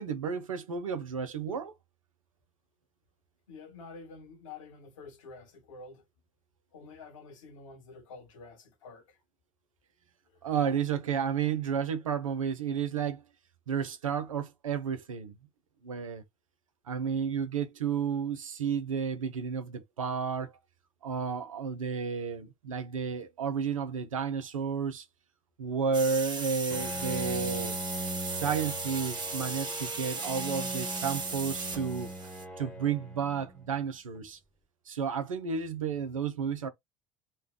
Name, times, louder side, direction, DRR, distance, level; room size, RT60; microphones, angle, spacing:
voice 1, 0.0-1.7 10.4-13.2 13.7-15.3 15.8-16.2 16.9-20.5 21.0-25.1 25.6-27.8 28.2-32.1 32.6-34.4 34.9-36.7, right 6 dB, 80° right, 0.6 m, -32 dB
voice 2, 3.5-6.0 6.7-9.2 10.3-10.5, left 4 dB, 75° left, 1.0 m, -48 dB
sound 1, 25.9-32.5, right 4 dB, 25° right, 1.2 m, -37 dB
Bowed string instrument, 26.7-33.8, equal, 5° left, 1.1 m, -40 dB
3.2 x 2.3 x 3.6 m
figure-of-eight pair, 60°, 17 cm